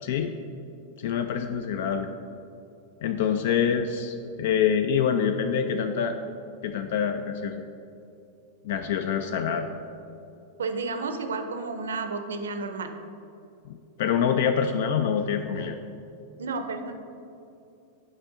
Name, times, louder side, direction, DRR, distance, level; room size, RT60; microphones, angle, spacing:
voice 1, 0.0-0.3 1.0-2.1 3.0-6.2 6.6-7.5 8.6-9.7 13.7-15.8, left 7 dB, 65° left, 7 dB, 0.3 m, -26 dB
voice 2, 10.6-12.9 16.4-16.9, right 4 dB, 85° right, 7 dB, 0.5 m, -31 dB
6.3 x 4.9 x 3.7 m, 2.7 s
hypercardioid pair, 105°, 0 cm